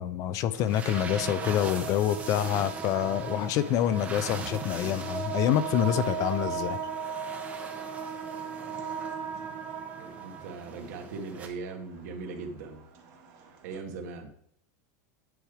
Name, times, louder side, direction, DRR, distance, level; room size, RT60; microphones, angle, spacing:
voice 1, 0.0-6.8, left 11 dB, 35° left, 14 dB, 0.4 m, -27 dB
sound 1, 0.5-11.5, right 4 dB, 15° right, 0.8 m, -42 dB
sound 2, 0.8-13.8, right 6 dB, 40° right, 1.6 m, -38 dB
voice 2, 10.0-12.8 13.6-14.3, right 4 dB, 65° right, 5 dB, 1.3 m, -39 dB
9.1 x 3.3 x 4.8 m, 0.68 s
supercardioid pair, 150°, 10 cm